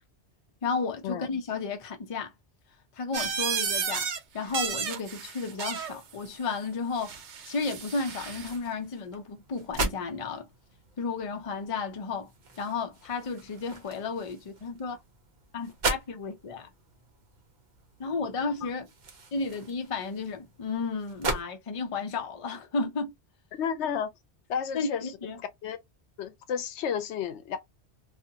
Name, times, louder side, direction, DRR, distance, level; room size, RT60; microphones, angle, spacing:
voice 1, 0.6-2.3 2.9-4.1 4.3-7.2 7.5-10.5 11.0-12.3 12.6-15.0 15.5-16.7 18.0-18.9 19.3-23.1 24.7-25.4, left 4 dB, 40° left, 0.5 m, -33 dB
sound 1, 3.1-4.2 4.5-6.0 7.0-8.5, right 7 dB, 85° right, 0.9 m, -33 dB
sound 2, 7.8-21.4, right 3 dB, 50° right, 0.7 m, -39 dB
voice 2, 23.6-24.1 24.5-25.1 25.6-25.8 26.2-27.6, left 7 dB, 85° left, 0.9 m, -31 dB
2.5 x 2.5 x 2.7 m
omnidirectional pair, 1.2 m